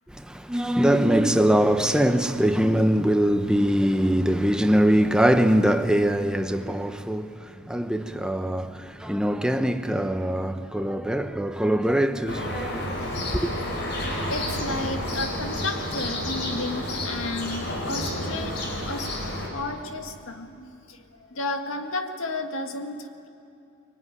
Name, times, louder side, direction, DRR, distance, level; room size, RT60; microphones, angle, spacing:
voice 1, 0.1-7.3 7.7-13.5, equal, 5° right, 0.9 m, -22 dB
sound 1, 12.3-19.5, left 1 dB, 55° left, 4.6 m, -30 dB
voice 2, 14.3-18.5 18.9-19.1 19.5-21.0 21.3-23.3, left 2 dB, 85° left, 1.8 m, -32 dB
24.5 x 22.5 x 9.8 m
head